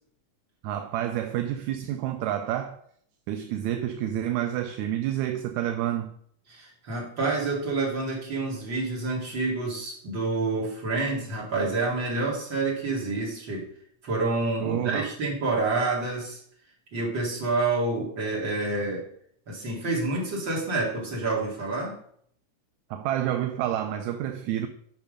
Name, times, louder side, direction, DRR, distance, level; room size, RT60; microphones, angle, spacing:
voice 1, 0.6-2.8 3.3-6.1 14.6-15.1 22.9-24.7, right 11 dB, 80° right, 1.9 m, -29 dB
voice 2, 6.5-13.7 14.0-16.4 16.9-19.0 19.5-22.0, right 3 dB, 40° right, 2.9 m, -28 dB
9.0 x 5.7 x 5.2 m
omnidirectional pair, 3.5 m